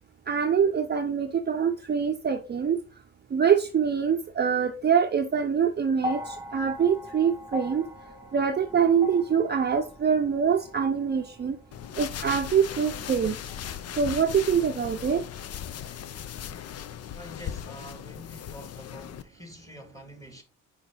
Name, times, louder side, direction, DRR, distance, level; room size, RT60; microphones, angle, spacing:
voice 1, 0.3-2.8 3.3-7.9 8.3-11.6 12.0-13.4 14.0-15.2, right 7 dB, 35° right, 0.6 m, -24 dB
sound 1, 6.0-14.3 15.4-15.5, left 2 dB, 10° right, 1.5 m, -41 dB
sound 2, 11.7-19.2, left 9 dB, 55° left, 0.6 m, -38 dB
voice 2, 17.1-20.4, equal, 10° left, 2.1 m, -46 dB
6.0 x 4.8 x 3.8 m
cardioid pair, 90°, 30 cm